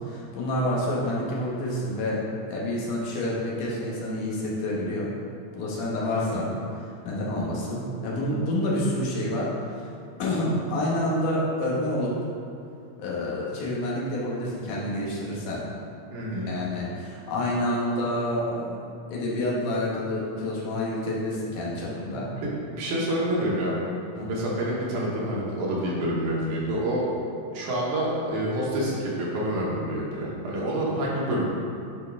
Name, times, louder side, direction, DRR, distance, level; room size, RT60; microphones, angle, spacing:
voice 1, 0.0-2.2 2.5-5.1 5.5-9.9 10.2-12.2 13.0-15.6 16.4-18.7 19.1-22.3 24.2-24.3, left 1 dB, 85° left, -5 dB, 2.8 m, -28 dB
voice 2, 6.1-6.5 16.1-16.5 22.4-23.8 24.1-27.1 27.5-31.5, right 1 dB, 80° right, -5 dB, 2.7 m, -28 dB
10.5 x 4.1 x 3.6 m, 2.5 s
omnidirectional pair, 3.5 m